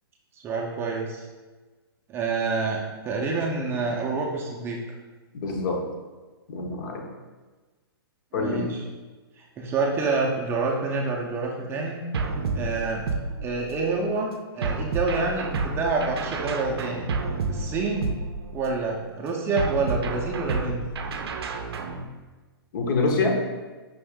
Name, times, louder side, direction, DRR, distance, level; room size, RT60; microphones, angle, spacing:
voice 1, 0.4-1.3 2.1-4.8 8.3-8.9 9.4-12.0 12.5-13.0 13.4-17.1 17.5-18.1 18.5-20.8, right 3 dB, 20° right, -1 dB, 0.4 m, -27 dB
voice 2, 5.3-5.8 6.5-7.0 8.3-8.7 22.7-23.4, left 3 dB, 55° left, 1 dB, 0.8 m, -25 dB
sound 1, 12.1-13.9 14.6-18.8 19.6-22.0, right 3 dB, 75° right, 0.4 m, -30 dB
5.4 x 2.5 x 3.5 m, 1.3 s
hypercardioid pair, 135°, 13 cm